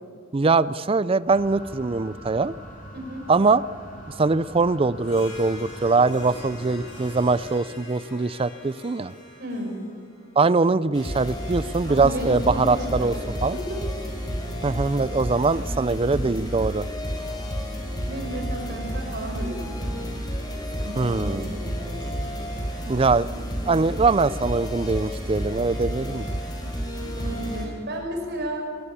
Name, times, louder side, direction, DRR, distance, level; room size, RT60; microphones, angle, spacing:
voice 1, 0.3-2.5 3.3-3.6 4.2-9.1 10.4-13.1 13.4-13.6 14.6-16.9 21.0-21.5 22.8-23.3 23.7-26.4, right 3 dB, 30° right, 18 dB, 0.4 m, -22 dB
sound 1, 1.2-7.5, right 1 dB, 40° left, 3.9 m, -43 dB
voice 2, 2.9-3.3 9.4-9.8 11.9-13.2 13.5-13.8 14.6-14.7 16.4-16.5 18.1-20.0 20.8-22.1 27.2-28.6, right 1 dB, 55° right, 1 dB, 5.5 m, -33 dB
Harp, 5.0-10.7, left 1 dB, 80° left, 7.7 m, -43 dB
sound 2, 10.9-27.7, equal, 20° left, 4.4 m, -31 dB
20.0 x 19.0 x 8.6 m, 2.2 s
head